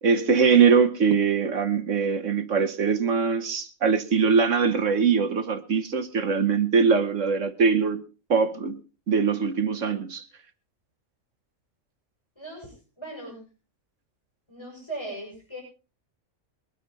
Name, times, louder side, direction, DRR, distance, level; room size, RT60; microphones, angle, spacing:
voice 1, 0.0-8.0 8.3-8.8 9.1-10.2, right 5 dB, 60° right, 1.5 m, -22 dB
voice 2, 12.4-13.4 14.5-15.6, right 2 dB, 20° left, 7.3 m, -38 dB
23.0 x 9.2 x 4.1 m
omnidirectional pair, 1.5 m